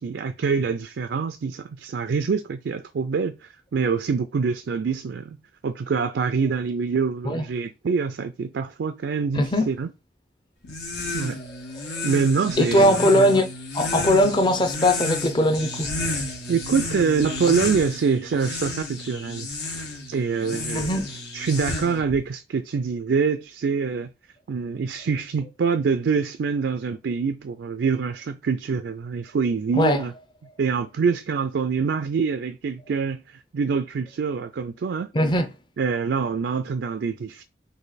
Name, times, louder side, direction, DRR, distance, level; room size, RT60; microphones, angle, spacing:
voice 1, 0.0-5.4 5.6-9.9 11.1-11.4 12.0-13.3 16.0-19.5 20.1-20.9 21.3-24.1 24.5-30.1 30.6-33.2 33.5-35.1 35.8-37.4, right 5 dB, 80° right, 0.4 m, -25 dB
voice 2, 9.4-9.7 11.8-11.9 12.6-13.5 13.7-15.9 20.7-21.0 29.7-30.0 35.1-35.5, left 1 dB, 25° left, 0.6 m, -20 dB
sound 1, 10.6-22.2, left 2 dB, 80° left, 1.5 m, -32 dB
4.1 x 2.8 x 4.0 m
head